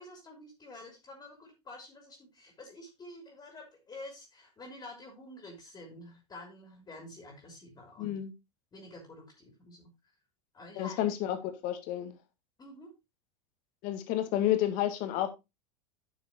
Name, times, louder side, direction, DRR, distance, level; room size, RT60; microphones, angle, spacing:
voice 1, 0.0-8.2 8.7-9.9 10.5-11.1 12.6-12.9, left 2 dB, 25° left, 3.1 m, -49 dB
voice 2, 8.0-8.3 10.8-12.2 13.8-15.3, left 12 dB, 55° left, 1.8 m, -30 dB
11.0 x 6.6 x 2.9 m
hypercardioid pair, 90°, 16 cm